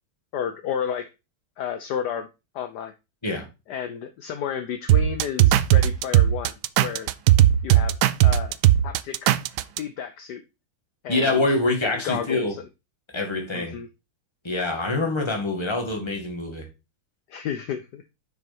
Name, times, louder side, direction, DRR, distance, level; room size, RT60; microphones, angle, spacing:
voice 1, 0.3-1.1 1.6-2.3 2.5-2.9 3.7-6.5 6.8-7.1 7.6-8.6 8.8-9.3 9.8-10.4 11.0-11.4 11.8-12.4 13.5-13.9 17.3-18.0, left 8 dB, 70° left, 1.0 m, -31 dB
sound 1, 4.9-9.8, right 13 dB, 85° right, 0.9 m, -17 dB
voice 2, 11.1-12.6 13.1-13.7 14.4-16.7, left 2 dB, 15° left, 1.9 m, -25 dB
6.6 x 6.4 x 4.3 m
omnidirectional pair, 2.4 m